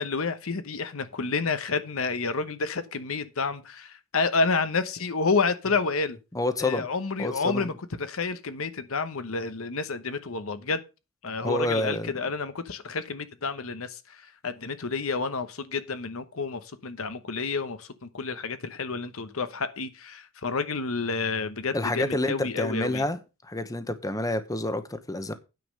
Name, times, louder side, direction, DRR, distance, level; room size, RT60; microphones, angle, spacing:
voice 1, 0.0-6.2 6.6-7.7 8.0-10.8 11.2-23.0, left 4 dB, 75° left, 1.0 m, -29 dB
voice 2, 6.3-6.9 7.2-7.7 11.4-12.1 21.7-25.3, left 1 dB, 15° left, 0.9 m, -28 dB
9.4 x 5.3 x 6.5 m
head